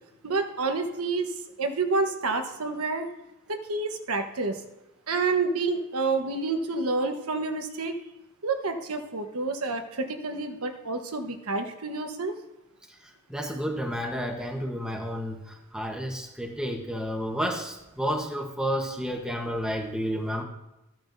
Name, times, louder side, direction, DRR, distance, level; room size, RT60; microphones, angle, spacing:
voice 1, 0.2-1.3 1.6-3.1 3.5-4.6 5.1-8.0 8.4-12.3, right 3 dB, 75° right, 5 dB, 1.1 m, -28 dB
voice 2, 12.9-20.4, equal, 5° right, 0 dB, 1.0 m, -31 dB
14.5 x 9.2 x 2.6 m, 0.93 s
head